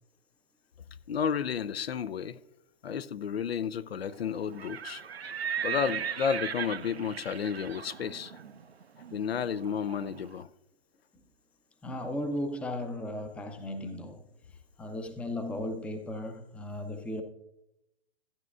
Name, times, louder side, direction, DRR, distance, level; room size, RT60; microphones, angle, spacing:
voice 1, 1.1-2.4 2.8-5.0 5.6-8.3 9.1-10.5, left 7 dB, 80° left, 0.6 m, -32 dB
Livestock farm animals working animals, 4.4-10.3, right 8 dB, 85° right, 0.7 m, -38 dB
voice 2, 11.8-14.2 14.8-17.2, left 1 dB, 5° left, 0.6 m, -36 dB
13.5 x 9.4 x 2.4 m
figure-of-eight pair, 120°, 30 cm